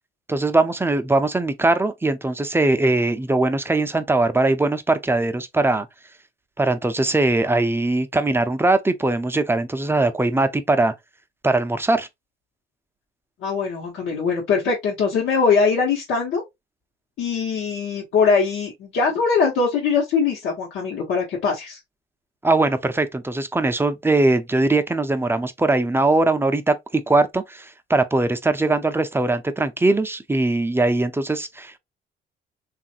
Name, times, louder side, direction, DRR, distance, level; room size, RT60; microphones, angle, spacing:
voice 1, 0.3-5.9 6.6-10.9 11.4-12.1 22.4-31.8, right 2 dB, 10° right, 0.5 m, -21 dB
voice 2, 13.4-16.4 17.2-21.8, left 5 dB, 80° left, 1.0 m, -21 dB
3.2 x 2.4 x 2.7 m
cardioid pair, 90°, 20 cm